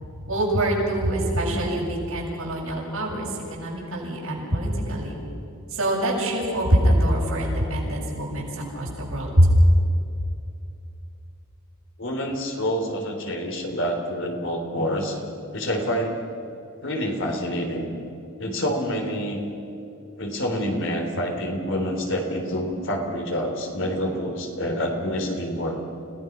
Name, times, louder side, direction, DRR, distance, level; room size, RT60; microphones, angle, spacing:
voice 1, 0.3-5.1 5.7-8.5 8.7-9.5, right 1 dB, 80° right, -4 dB, 7.4 m, -24 dB
voice 2, 12.0-15.2 15.5-16.2 16.8-17.9 18.4-19.4 20.2-25.8, equal, 60° left, 3 dB, 3.3 m, -27 dB
29.5 x 17.5 x 6.1 m, 2.8 s
head